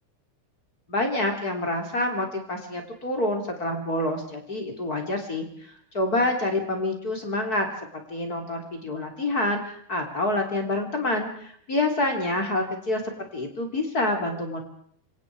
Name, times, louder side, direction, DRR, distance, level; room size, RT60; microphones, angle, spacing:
voice 1, 0.9-13.0 13.3-14.6, left 2 dB, 30° left, 3 dB, 3.7 m, -27 dB
28.0 x 24.5 x 4.8 m, 0.63 s
omnidirectional pair, 3.7 m